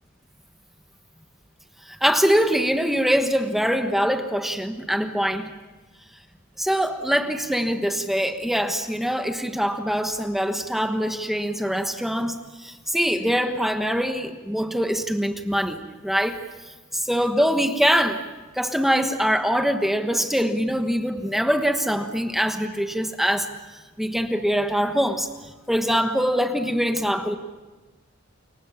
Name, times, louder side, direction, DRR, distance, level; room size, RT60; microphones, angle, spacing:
voice 1, 1.9-5.5 6.6-16.4 17.1-18.2 18.5-23.5 24.0-25.3 25.7-27.4, equal, ahead, 6 dB, 1.3 m, -23 dB
29.5 x 23.0 x 7.3 m, 1.2 s
head